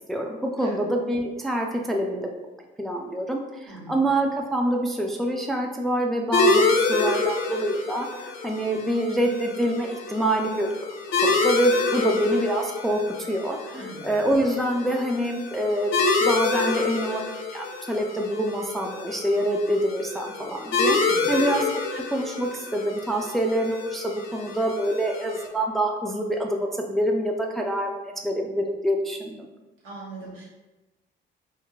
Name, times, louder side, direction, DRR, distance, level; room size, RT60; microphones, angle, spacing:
voice 1, 0.1-2.3 2.8-10.9 11.2-13.0 13.3-13.6 14.0-15.9 16.2-17.2 17.5-21.0 21.3-29.5, right 1 dB, ahead, 1 dB, 0.3 m, -26 dB
sound 1, 6.3-25.5, left 3 dB, 80° left, 0.5 m, -27 dB
voice 2, 13.7-14.1 21.1-21.4 29.8-30.4, right 2 dB, 80° right, -5 dB, 1.2 m, -40 dB
2.3 x 2.2 x 3.8 m, 1.1 s
cardioid pair, 90°, 20 cm